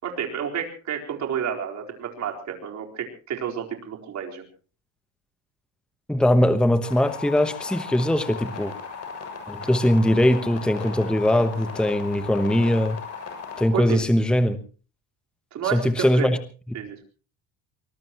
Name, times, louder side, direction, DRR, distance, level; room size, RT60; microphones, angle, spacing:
voice 1, 0.0-4.4 13.7-14.0 15.5-16.3 16.7-17.0, right 8 dB, 45° right, 2 dB, 4.3 m, -30 dB
voice 2, 6.1-8.7 9.5-13.0 13.6-14.6 15.7-16.4, left 1 dB, ahead, 10 dB, 1.1 m, -21 dB
sound 1, 6.8-13.6, left 5 dB, 40° left, 7.5 m, -37 dB
23.5 x 20.0 x 3.0 m, 0.36 s
cardioid pair, 135°, 40 cm